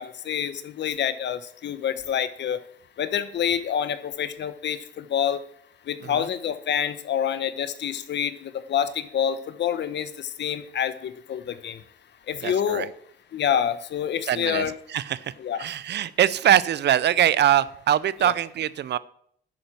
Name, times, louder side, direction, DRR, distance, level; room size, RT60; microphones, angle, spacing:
voice 1, 0.0-2.6 3.0-5.4 5.9-11.8 12.3-12.9 13.3-14.7 15.4-15.6 18.2-18.3, left 9 dB, 60° left, 13 dB, 1.1 m, -27 dB
voice 2, 12.4-12.9 14.3-15.3 15.6-19.0, right 11 dB, 60° right, 19 dB, 0.6 m, -23 dB
10.5 x 8.7 x 6.1 m, 0.65 s
cardioid pair, 90°, 20 cm